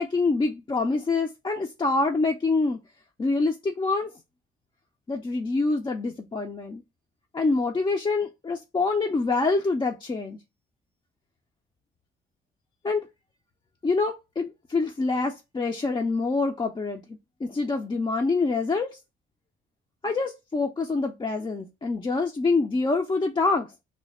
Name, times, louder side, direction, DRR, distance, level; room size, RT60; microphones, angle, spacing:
voice 1, 0.0-2.8 3.2-4.1 5.1-6.8 7.3-10.4 12.8-13.1 13.8-17.0 17.4-18.9 20.0-23.7, left 3 dB, 25° left, 0.5 m, -26 dB
3.2 x 2.2 x 4.1 m
cardioid pair, 90°, 20 cm